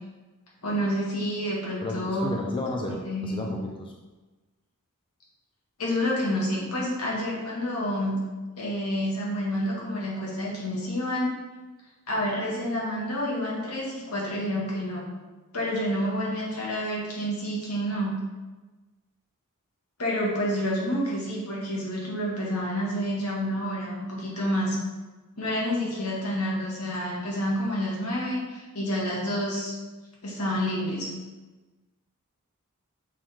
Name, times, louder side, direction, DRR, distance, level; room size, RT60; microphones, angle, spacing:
voice 1, 0.6-2.3 2.9-3.5 5.8-8.2 8.6-11.3 12.1-15.0 15.5-18.2 20.0-24.8 25.4-29.8 30.2-31.1, equal, 80° left, -5 dB, 2.0 m, -29 dB
voice 2, 1.8-3.9, left 2 dB, 25° left, 0 dB, 0.5 m, -33 dB
6.1 x 3.9 x 4.5 m, 1.2 s
head